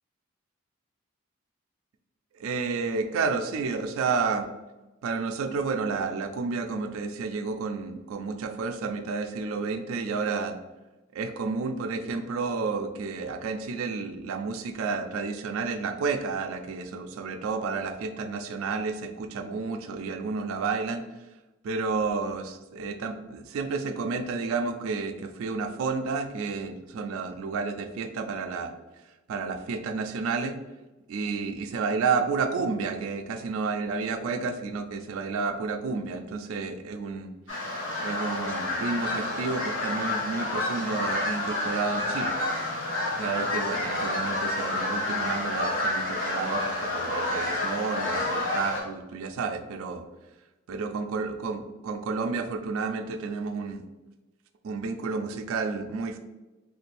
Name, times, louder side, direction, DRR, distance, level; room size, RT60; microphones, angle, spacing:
voice 1, 2.4-4.5 5.0-10.6 11.1-21.0 21.6-28.7 29.3-30.6 31.1-37.3 38.0-42.4 43.2-50.0 50.7-53.8 54.6-56.2, right 4 dB, 80° right, 6 dB, 0.3 m, -31 dB
sound 1, 37.5-48.8, left 2 dB, 60° left, 1.1 m, -29 dB
3.2 x 2.5 x 3.2 m, 1.1 s
head